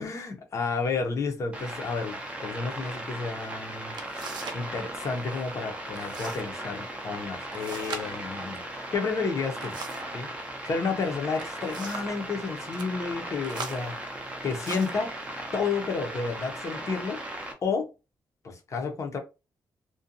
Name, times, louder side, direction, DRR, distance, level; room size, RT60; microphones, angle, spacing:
voice 1, 0.0-4.0 4.5-9.7 10.1-10.3 10.7-14.0 14.4-15.1 15.5-17.2 17.6-17.9 18.4-19.2, left 4 dB, 40° left, 0.6 m, -31 dB
sound 1, 1.5-17.5, right 1 dB, 15° right, 0.5 m, -37 dB
sound 2, 3.9-4.7 5.0-5.4 5.9-6.5 6.8-6.9 7.5-10.2 11.2-12.2 12.6-12.9 13.4-15.1 15.8-16.0 16.6-17.1, right 5 dB, 70° right, 0.5 m, -42 dB
2.5 x 2.2 x 2.5 m
wide cardioid pair, 175°, 8 cm